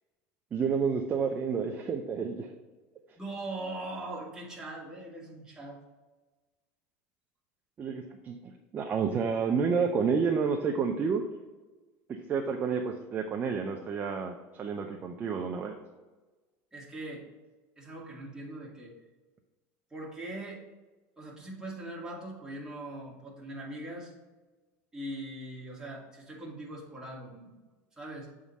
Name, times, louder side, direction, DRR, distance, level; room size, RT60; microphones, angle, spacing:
voice 1, 0.5-2.5 7.8-11.2 12.3-15.7, right 6 dB, 25° right, 3 dB, 0.5 m, -30 dB
voice 2, 3.2-5.8 16.7-17.2 17.8-19.0 19.9-20.6 21.2-24.1 24.9-27.6 28.0-28.3, right 1 dB, 10° right, -4 dB, 1.7 m, -41 dB
7.2 x 3.7 x 4.1 m, 1.2 s
supercardioid pair, 140°, 7 cm